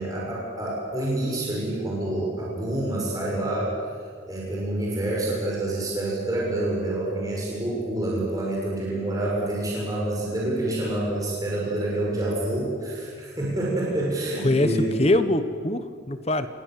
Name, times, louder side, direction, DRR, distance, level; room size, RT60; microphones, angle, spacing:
voice 1, 0.0-3.7 4.3-14.9, right 1 dB, 20° right, -4 dB, 6.1 m, -27 dB
voice 2, 14.4-16.5, left 1 dB, 30° left, 11 dB, 1.0 m, -23 dB
28.5 x 19.5 x 7.6 m, 2.1 s
head